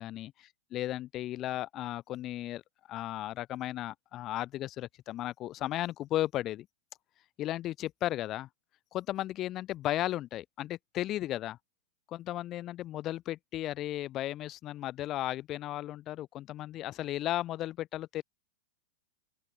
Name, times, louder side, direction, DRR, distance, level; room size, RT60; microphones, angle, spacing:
voice 1, 0.0-0.3 0.7-2.6 2.9-6.7 7.4-8.5 8.9-11.6 12.1-18.2, left 14 dB, 35° left, 2.0 m, -35 dB
open air
hypercardioid pair, 130°, 0 cm